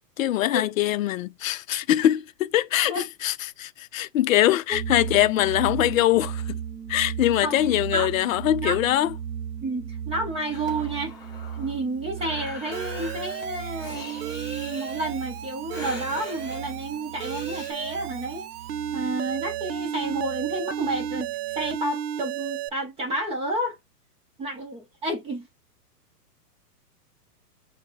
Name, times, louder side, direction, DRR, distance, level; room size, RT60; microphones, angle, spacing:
voice 1, 0.2-6.6 6.9-9.1, left 13 dB, 55° left, 0.6 m, -23 dB
sound 1, 4.7-21.8, right 8 dB, 30° right, 1.5 m, -37 dB
voice 2, 7.4-8.1 8.6-8.8 9.6-11.2 11.5-18.5 18.9-23.8 24.4-25.5, right 2 dB, 10° right, 0.8 m, -30 dB
Breathing, 10.5-17.7, left 4 dB, 10° left, 1.7 m, -43 dB
Alarm, 12.7-22.7, right 10 dB, 65° right, 0.6 m, -34 dB
6.3 x 2.3 x 3.1 m
hypercardioid pair, 145°, 48 cm